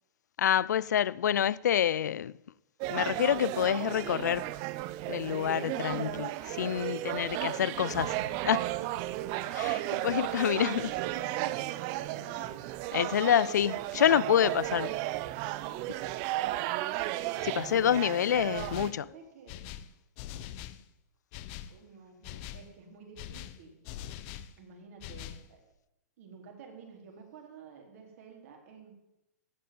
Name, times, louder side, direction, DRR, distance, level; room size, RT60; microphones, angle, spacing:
voice 1, 0.4-2.3 2.9-4.5 5.1-6.3 6.6-8.2 8.4-8.7 9.5-10.8 12.9-14.9 17.4-19.0, left 10 dB, 85° left, 0.4 m, -27 dB
sound 1, 2.8-18.9, right 16 dB, 40° right, 0.6 m, -34 dB
voice 2, 5.6-6.2 10.5-12.6 13.9-14.9 15.6-15.8 18.8-19.6 21.7-23.8 24.6-25.6 26.2-28.9, right 6 dB, 55° right, 4.0 m, -48 dB
sound 2, 7.9-15.3, right 4 dB, 70° right, 2.1 m, -51 dB
sound 3, 18.5-19.0 19.5-20.8 21.3-21.8 22.2-22.7 23.2-24.5 25.0-25.5, left 11 dB, 40° left, 0.8 m, -43 dB
15.5 x 5.3 x 9.4 m
hypercardioid pair, 140°, 9 cm